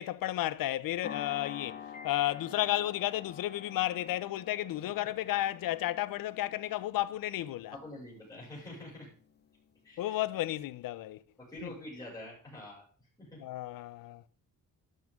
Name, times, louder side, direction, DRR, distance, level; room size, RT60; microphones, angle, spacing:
voice 1, 0.0-1.8 2.0-7.8 10.0-11.2 11.6-11.7 13.4-14.2, left 14 dB, 75° left, 0.7 m, -32 dB
sound 1, 1.0-9.5, left 7 dB, 30° left, 0.9 m, -49 dB
Piano, 1.9-3.0, left 4 dB, 55° left, 3.7 m, -54 dB
voice 2, 7.7-9.1 9.8-10.1 11.4-12.8 13.2-13.4, left 1 dB, 10° left, 6.4 m, -46 dB
12.0 x 12.0 x 3.7 m
cardioid pair, 145°, 34 cm